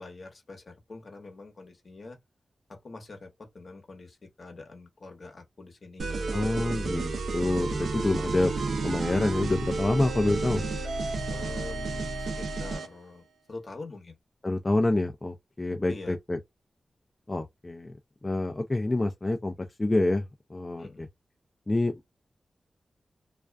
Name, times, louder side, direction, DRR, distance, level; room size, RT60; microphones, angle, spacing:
voice 1, 0.0-2.2 2.7-6.2 11.3-14.2 15.9-16.2 20.8-21.1, left 3 dB, 55° left, 0.9 m, -45 dB
sound 1, 6.0-12.9, right 3 dB, 85° right, 0.5 m, -31 dB
voice 2, 6.3-8.5 8.8-10.6 14.4-16.4 17.3-17.9 18.2-19.5 19.8-21.1 21.7-22.1, left 2 dB, 30° left, 0.4 m, -27 dB
2.4 x 2.3 x 2.2 m
cardioid pair, 60°, 0 cm